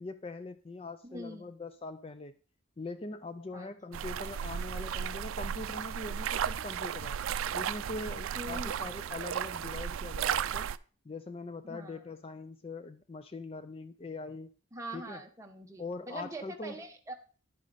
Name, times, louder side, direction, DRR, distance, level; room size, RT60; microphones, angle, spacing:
voice 1, 0.0-2.3 2.8-7.2 7.5-10.7 11.0-14.5 14.9-15.3 15.8-16.8, left 3 dB, 30° left, 11 dB, 0.4 m, -42 dB
voice 2, 1.0-1.5 3.5-4.1 8.3-8.8 11.6-12.0 14.7-17.1, right 1 dB, 15° right, 3 dB, 1.1 m, -44 dB
sound 1, 3.9-10.8, right 8 dB, 90° right, 0.4 m, -34 dB
10.5 x 8.2 x 4.0 m, 0.39 s
head